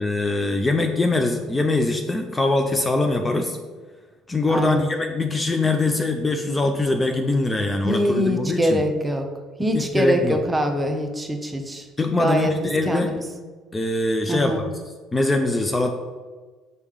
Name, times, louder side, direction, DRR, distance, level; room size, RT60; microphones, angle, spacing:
voice 1, 0.0-3.6 4.3-8.8 9.7-10.4 12.0-13.2 13.7-14.6 15.1-15.9, left 2 dB, 20° left, 5 dB, 0.6 m, -22 dB
voice 2, 4.5-4.9 7.8-9.3 9.6-11.8 12.2-12.5 12.9-13.2 14.3-14.7, equal, 15° right, 4 dB, 0.9 m, -23 dB
6.7 x 3.5 x 4.9 m, 1.4 s
hypercardioid pair, 65°, 0 cm